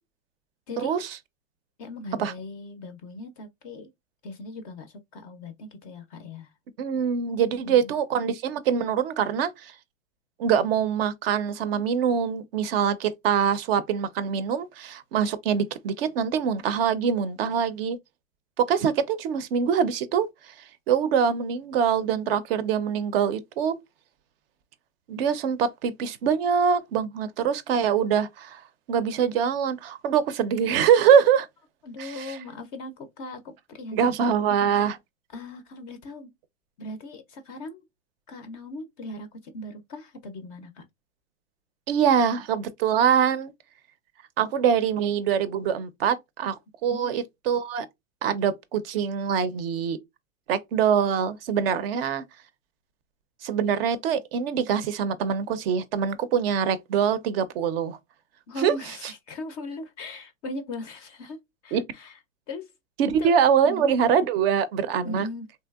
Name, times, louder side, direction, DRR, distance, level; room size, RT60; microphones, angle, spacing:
voice 1, 0.8-1.2 2.2-2.3 6.8-9.8 10.4-18.0 18.6-20.5 20.9-23.7 25.1-28.6 28.9-31.5 32.0-32.4 33.9-35.0 41.9-43.5 44.4-46.6 46.8-47.9 48.2-50.0 50.5-52.2 53.4-58.0 58.6-58.7 61.7-61.8 63.0-65.3, right 7 dB, 50° right, 0.4 m, -24 dB
voice 2, 1.8-3.9 4.2-6.5 7.5-7.9 31.8-34.2 35.3-36.3 36.8-37.8 38.3-40.8 46.9-47.1 58.5-61.4 61.6-62.1 62.5-62.7 63.2-63.3 63.6-64.0 65.0-65.5, left 2 dB, 30° left, 0.4 m, -39 dB
3.2 x 2.6 x 2.2 m
hypercardioid pair, 125°, 40 cm